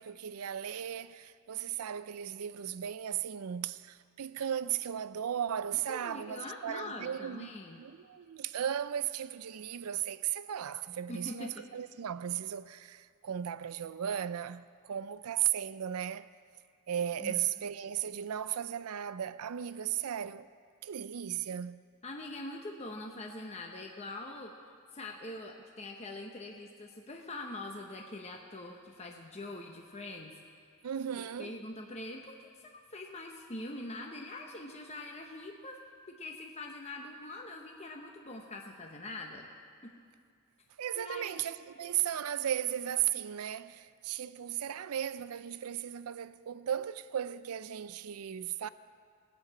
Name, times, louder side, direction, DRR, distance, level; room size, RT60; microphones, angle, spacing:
voice 1, 0.0-7.5 7.8-16.3 16.9-20.5 20.8-21.8 30.8-31.6 40.8-48.7, right 10 dB, 75° right, 0.4 m, -36 dB
voice 2, 5.9-7.8 11.1-11.5 17.2-17.4 22.0-24.5 24.9-30.4 31.1-32.4 32.6-35.8 36.1-39.5 39.8-39.9 40.9-41.4, left 2 dB, 30° left, 0.8 m, -43 dB
18.0 x 6.8 x 8.4 m
head